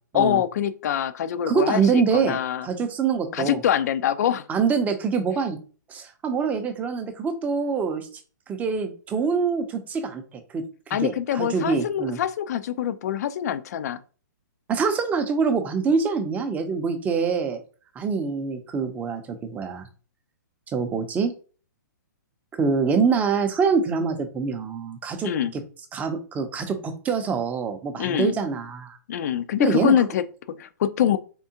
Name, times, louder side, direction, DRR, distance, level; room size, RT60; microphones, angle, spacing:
voice 1, 0.1-2.7 3.3-4.4 10.9-14.0 25.2-25.5 28.0-28.4 29.1-31.2, left 10 dB, 55° left, 0.4 m, -24 dB
voice 2, 1.5-3.6 4.5-5.6 5.9-8.1 8.5-10.2 10.5-12.2 14.7-17.6 18.0-19.9 20.7-21.3 22.6-25.6 25.9-29.0 29.6-29.9, right 5 dB, 15° right, 0.6 m, -25 dB
3.6 x 3.4 x 2.8 m
hypercardioid pair, 135°, 10 cm